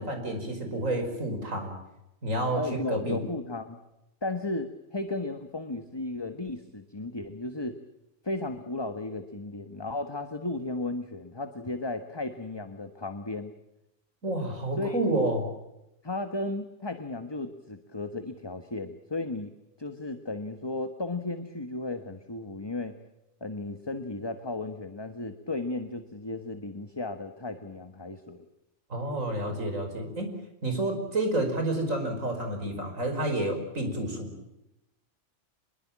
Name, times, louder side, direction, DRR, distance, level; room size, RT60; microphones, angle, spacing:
voice 1, 0.0-1.7 2.2-2.6 2.9-3.2 14.2-15.5 28.9-30.3 30.6-34.3, right 1 dB, 90° right, 5 dB, 5.7 m, -29 dB
voice 2, 2.5-3.8 4.2-7.8 8.2-13.5 14.8-15.0 16.0-19.5 19.8-23.0 23.4-28.4, left 2 dB, 20° left, 8 dB, 1.4 m, -34 dB
25.5 x 22.0 x 7.4 m, 0.90 s
omnidirectional pair, 1.3 m